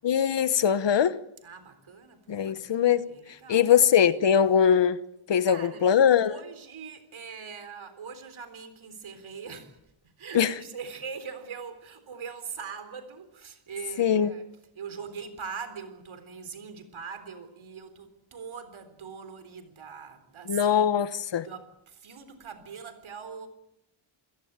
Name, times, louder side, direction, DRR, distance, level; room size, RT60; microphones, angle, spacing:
voice 1, 0.0-1.2 2.3-3.0 3.5-5.0 5.3-6.3 10.3-10.5 14.0-14.3 20.5-21.5, left 8 dB, 60° left, 1.1 m, -21 dB
voice 2, 1.4-3.7 5.4-9.8 10.2-14.4 14.7-20.9 21.4-23.5, right 6 dB, 70° right, 4.0 m, -42 dB
28.0 x 17.0 x 8.9 m
wide cardioid pair, 170°, 50 cm